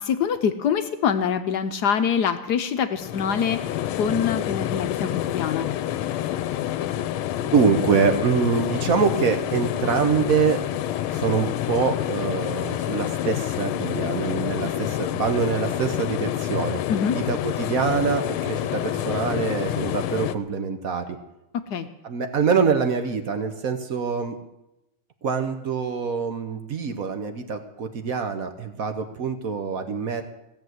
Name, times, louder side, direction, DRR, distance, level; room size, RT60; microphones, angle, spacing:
voice 1, 0.0-3.6 4.0-5.7 16.9-17.2 21.7-21.9, left 7 dB, 65° left, 9 dB, 1.1 m, -24 dB
sound 1, 3.0-20.4, left 12 dB, 90° left, 1.5 m, -28 dB
voice 2, 7.5-10.6 11.1-16.8 17.1-21.2 22.0-24.4 25.2-30.2, right 5 dB, 50° right, 7 dB, 1.2 m, -24 dB
16.0 x 7.5 x 7.9 m, 0.91 s
omnidirectional pair, 2.3 m